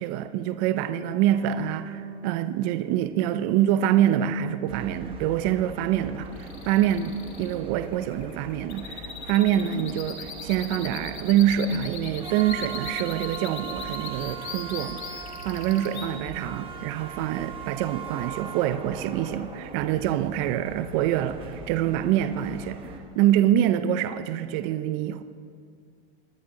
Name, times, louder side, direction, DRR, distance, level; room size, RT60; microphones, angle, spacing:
voice 1, 0.0-15.0 15.4-22.8 23.1-25.2, right 11 dB, 30° right, 0.4 m, -25 dB
sound 1, 1.3-4.4, right 3 dB, 60° left, 3.7 m, -43 dB
sound 2, 4.7-23.0, right 4 dB, 15° right, 1.3 m, -40 dB
sound 3, 6.3-16.1, left 7 dB, 80° left, 1.8 m, -39 dB
22.0 x 9.5 x 3.8 m
hypercardioid pair, 140°, 32 cm